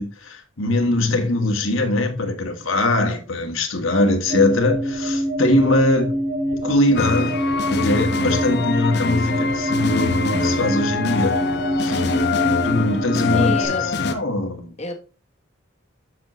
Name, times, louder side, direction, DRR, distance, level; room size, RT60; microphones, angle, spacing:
voice 1, 0.0-6.1 6.6-7.4 7.7-11.3 11.8-12.1 12.6-14.7, left 2 dB, 75° left, 1.7 m, -21 dB
sound 1, 4.2-13.7, equal, 50° right, 4.0 m, -25 dB
sound 2, 7.0-14.2, left 4 dB, 55° left, 0.7 m, -24 dB
voice 2, 13.2-13.9 14.8-14.9, left 2 dB, 30° left, 1.3 m, -29 dB
7.6 x 7.3 x 3.1 m
head